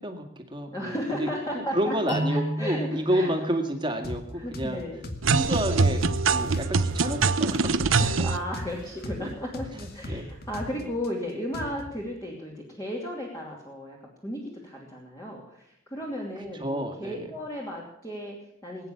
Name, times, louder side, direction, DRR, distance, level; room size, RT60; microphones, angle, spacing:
voice 1, 0.0-1.3 1.5-4.8 5.3-6.0 6.3-8.0 9.2-9.3 9.7-10.3 10.8-10.9 16.5-17.3, equal, 25° right, 4 dB, 2.0 m, -30 dB
voice 2, 0.7-3.3 4.4-5.0 8.0-9.7 9.9-14.0 14.2-18.9, equal, 15° left, -3 dB, 2.7 m, -34 dB
sound 1, 2.1-5.0, equal, 65° left, 7.8 m, -33 dB
sound 2, 4.0-4.2 4.5-4.7 5.0-5.2 5.5-7.2 7.5-7.6 8.0-8.2 8.5-8.7 9.0-9.2 9.5-11.1 11.5-12.0, left 1 dB, 50° left, 2.1 m, -38 dB
sound 3, 5.2-8.4, right 4 dB, 85° right, 0.9 m, -23 dB
21.0 x 9.6 x 7.2 m, 0.77 s
head